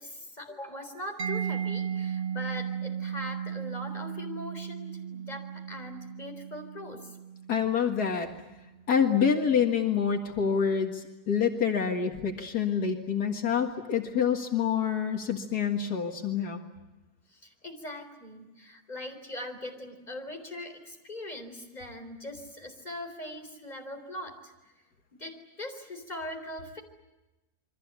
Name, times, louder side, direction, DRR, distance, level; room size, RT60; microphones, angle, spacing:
voice 1, 0.0-7.2 17.3-24.5 25.2-26.8, left 1 dB, 25° left, 4 dB, 4.1 m, -41 dB
Mallet percussion, 1.2-8.7, right 8 dB, 45° right, 1.5 m, -36 dB
voice 2, 7.5-8.3 8.9-16.6, left 7 dB, 80° left, 3 dB, 2.3 m, -27 dB
28.5 x 24.0 x 8.2 m, 1.0 s
omnidirectional pair, 1.7 m